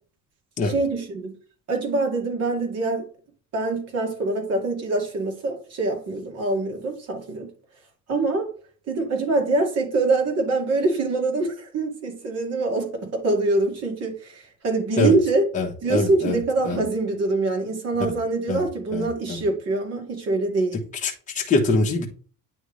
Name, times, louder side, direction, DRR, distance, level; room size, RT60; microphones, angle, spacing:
voice 1, 0.6-1.3 1.7-3.1 3.5-7.5 8.1-8.5 8.9-15.4 15.8-20.8, right 3 dB, 45° right, 2.2 m, -24 dB
voice 2, 15.5-16.4 16.6-16.8 18.5-18.6 18.9-19.4 21.0-22.1, left 3 dB, 20° left, 1.2 m, -23 dB
9.4 x 3.5 x 3.2 m
cardioid pair, 165°, 34 cm